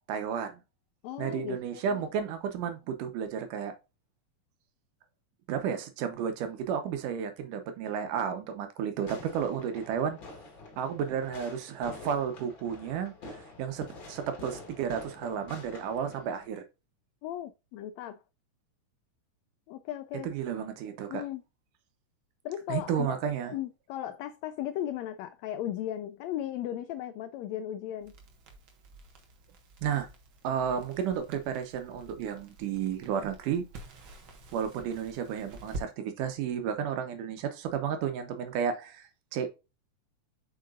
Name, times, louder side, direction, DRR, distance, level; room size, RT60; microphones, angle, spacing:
voice 1, 0.1-0.6 1.2-3.7 5.5-10.2 10.8-16.6 20.2-21.2 22.7-23.5 29.8-30.1 30.4-33.6 34.5-39.5, right 8 dB, 80° right, 2.5 m, -32 dB
voice 2, 1.0-2.0 17.2-18.2 19.7-20.3 21.1-21.4 22.4-23.2 23.5-28.1, left 12 dB, 90° left, 1.5 m, -36 dB
Fireworks, 9.1-16.5, left 2 dB, 40° left, 2.2 m, -47 dB
Crackle, 28.0-35.9, right 2 dB, 50° right, 1.6 m, -48 dB
7.8 x 5.7 x 2.5 m
omnidirectional pair, 3.6 m